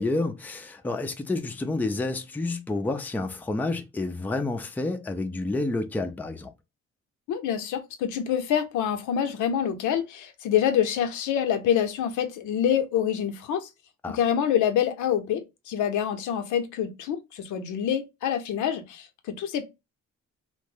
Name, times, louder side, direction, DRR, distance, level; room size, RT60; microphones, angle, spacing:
voice 1, 0.0-6.5 14.0-14.2, left 2 dB, 5° left, 0.3 m, -29 dB
voice 2, 7.3-13.7 14.1-19.6, left 9 dB, 80° left, 0.6 m, -26 dB
2.5 x 2.0 x 3.4 m
cardioid pair, 90°, 30 cm